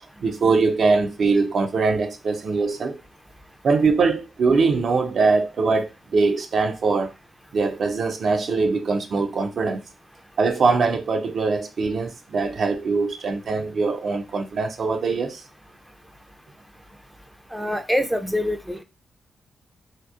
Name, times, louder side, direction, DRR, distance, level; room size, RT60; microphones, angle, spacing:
voice 1, 0.2-3.0 3.6-7.1 7.5-9.8 10.4-15.4, right 4 dB, 60° right, 0.4 m, -22 dB
voice 2, 17.5-18.8, left 1 dB, ahead, 0.4 m, -25 dB
2.8 x 2.1 x 2.3 m
hypercardioid pair, 45°, 0 cm